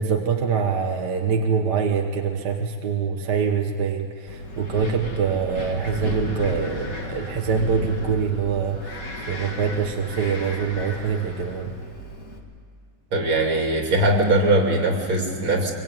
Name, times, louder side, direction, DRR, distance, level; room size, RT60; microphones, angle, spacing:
voice 1, 0.0-9.0 9.3-11.7, right 6 dB, 60° right, 3 dB, 1.7 m, -24 dB
Wind, 4.3-12.4, left 1 dB, 45° left, 2.6 m, -33 dB
voice 2, 13.1-15.7, right 1 dB, 75° right, 1 dB, 3.8 m, -20 dB
23.5 x 21.5 x 9.1 m, 2.2 s
omnidirectional pair, 2.2 m